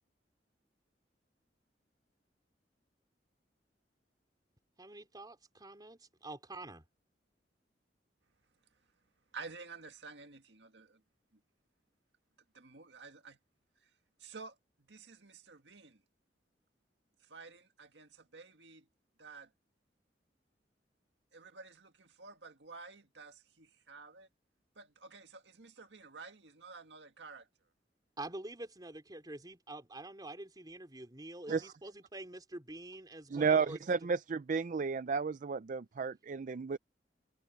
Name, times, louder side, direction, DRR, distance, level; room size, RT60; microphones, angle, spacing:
voice 1, 4.8-6.8 28.2-33.8, right 2 dB, 25° right, 4.0 m, -47 dB
voice 2, 9.3-11.0 12.5-13.4 14.2-14.6 14.9-16.0 17.3-18.9 19.2-19.5 21.3-24.3 24.8-27.5, right 4 dB, 85° right, 1.9 m, -51 dB
voice 3, 33.3-36.8, right 5 dB, 45° right, 0.4 m, -32 dB
head